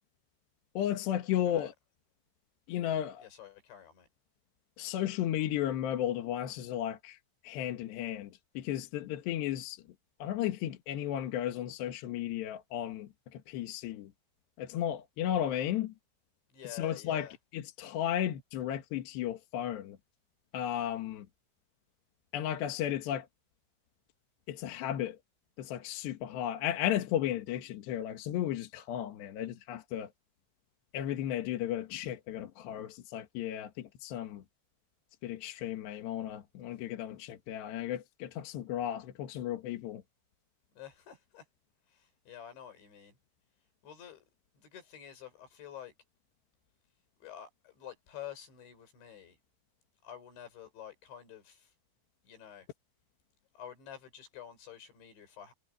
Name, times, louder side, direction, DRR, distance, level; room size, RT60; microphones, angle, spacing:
voice 1, 0.8-1.7 2.7-3.2 4.8-7.2 7.4-9.8 10.2-14.1 14.6-15.9 16.7-17.3 17.5-20.0 20.5-21.3 22.3-23.3 24.5-25.2 25.6-30.1 30.9-34.4 35.2-40.0, left 11 dB, 75° left, 3.7 m, -34 dB
voice 2, 3.2-4.1 16.5-17.4 40.7-41.5 41.9-43.2 43.8-44.3 44.5-45.9 47.2-49.4 50.0-51.7 52.2-52.7 53.5-55.5, left 10 dB, 90° left, 7.7 m, -49 dB
omnidirectional pair, 5.1 m